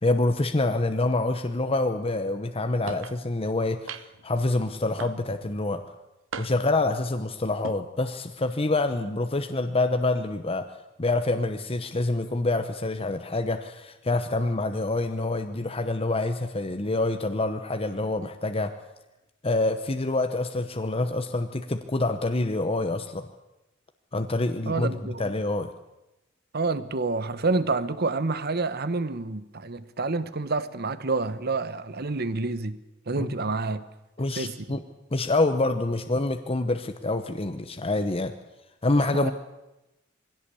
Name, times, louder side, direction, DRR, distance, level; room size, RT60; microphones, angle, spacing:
voice 1, 0.0-5.8 6.4-18.8 19.4-23.3 24.1-25.7 33.2-33.3 34.2-34.8 35.1-38.3 38.8-39.3, left 2 dB, 30° left, 1.0 m, -26 dB
sound 1, 2.9-3.2 3.9-4.3 5.0-5.5 6.3-6.8 7.5-7.8, right 5 dB, 80° right, 0.9 m, -38 dB
voice 2, 24.7-25.2 26.5-32.8 33.1-33.9 34.4-34.8 39.1-39.3, right 3 dB, 55° right, 1.1 m, -28 dB
21.5 x 16.5 x 8.5 m
head